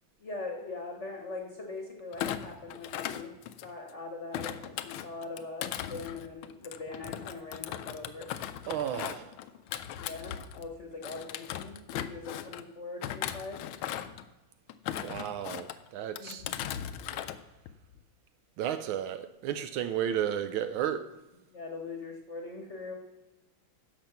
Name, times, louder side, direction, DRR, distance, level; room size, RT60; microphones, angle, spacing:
voice 1, 0.2-3.3 3.6-8.3 10.0-13.6 16.2-16.5 21.5-22.9, left 3 dB, 40° left, 1.1 m, -41 dB
Thump thud, 2.1-3.9 4.3-10.7 11.0-12.6 13.0-14.2 14.7-15.8 16.2-17.4 17.7-18.0, left 11 dB, 80° left, 1.4 m, -38 dB
voice 2, 8.7-9.4 15.0-16.4 18.6-21.1, right 9 dB, 75° right, 1.3 m, -33 dB
10.5 x 6.9 x 5.8 m
omnidirectional pair, 2.4 m